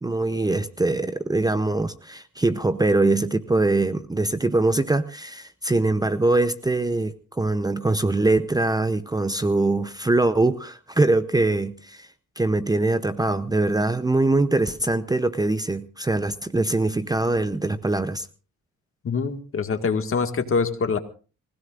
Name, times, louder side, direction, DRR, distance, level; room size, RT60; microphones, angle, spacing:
voice 1, 0.0-12.1 12.4-18.3, right 2 dB, 15° right, 12 dB, 0.7 m, -23 dB
voice 2, 19.0-21.0, left 5 dB, 45° left, 7 dB, 2.0 m, -24 dB
26.0 x 16.5 x 2.5 m, 0.37 s
cardioid pair, 90°, 30 cm